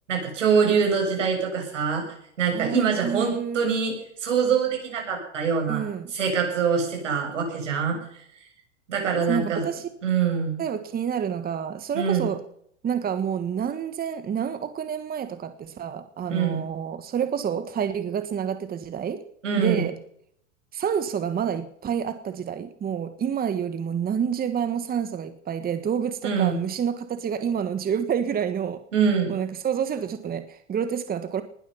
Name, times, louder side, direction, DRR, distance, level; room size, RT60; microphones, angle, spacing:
voice 1, 0.1-2.1 2.4-5.8 6.1-8.0 8.9-9.7 10.0-10.6 11.9-12.3 16.3-16.7 19.4-19.8 26.2-26.6 28.9-29.4, right 6 dB, 85° right, 2 dB, 7.7 m, -24 dB
voice 2, 2.5-3.6 5.7-6.1 9.3-9.9 10.6-12.4 12.8-19.2 19.6-19.9 20.7-28.8 29.3-31.4, right 8 dB, 25° right, 10 dB, 1.5 m, -28 dB
20.0 x 12.0 x 5.7 m, 0.67 s
hypercardioid pair, 100°, 36 cm